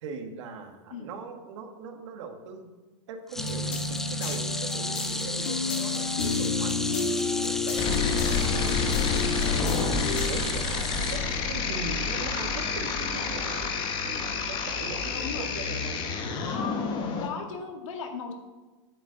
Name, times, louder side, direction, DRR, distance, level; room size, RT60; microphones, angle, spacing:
voice 1, 0.0-2.7 3.1-9.6 10.3-13.7 14.0-16.0, right 5 dB, 65° right, 5 dB, 1.6 m, -41 dB
sound 1, 3.3-11.8 12.1-12.4 13.6-13.7, left 1 dB, ahead, 0.3 m, -34 dB
sound 2, 3.4-10.3, left 5 dB, 50° left, 1.6 m, -31 dB
sound 3, 7.8-17.3, left 5 dB, 30° left, 1.1 m, -29 dB
voice 2, 15.1-15.5 16.3-16.8 17.2-18.3, left 5 dB, 80° left, 3 dB, 2.0 m, -37 dB
9.3 x 5.4 x 7.5 m, 1.2 s
supercardioid pair, 160°, 16 cm